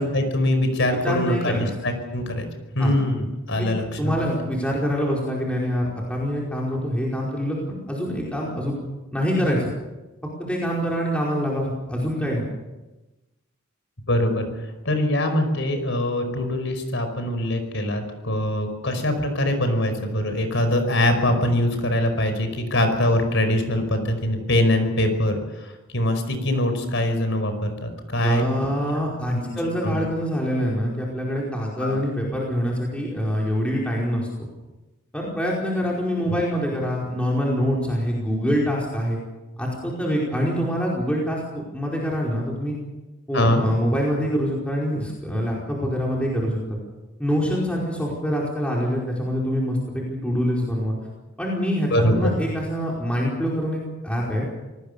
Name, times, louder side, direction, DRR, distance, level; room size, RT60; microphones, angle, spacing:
voice 1, 0.0-2.5 2.8-4.1 14.1-14.4 14.9-28.4 29.3-29.6 29.8-30.1 31.8-32.0 43.3-43.6 51.9-52.3, left 1 dB, 65° left, 7 dB, 5.1 m, -23 dB
voice 2, 1.0-1.7 2.8-2.9 3.6-3.7 4.0-8.7 9.1-9.7 10.4-12.4 28.2-34.3 35.1-39.2 39.6-41.4 41.7-42.7 43.3-46.6 47.2-51.0 51.4-54.4, equal, 5° left, -4 dB, 4.8 m, -25 dB
27.0 x 19.5 x 6.9 m, 1.1 s
head